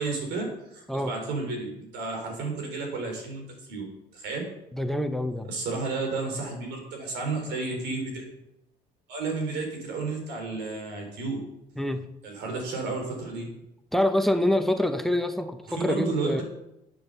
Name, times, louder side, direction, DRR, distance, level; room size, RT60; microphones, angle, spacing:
voice 1, 0.0-3.9 4.1-4.5 5.5-8.3 9.1-11.4 12.2-13.5 15.7-16.4, right 3 dB, 85° right, 3 dB, 4.1 m, -32 dB
voice 2, 4.7-5.5 11.8-12.1 13.9-16.4, left 1 dB, ahead, 9 dB, 0.9 m, -26 dB
11.5 x 8.0 x 6.8 m, 0.86 s
cardioid pair, 110°, 17 cm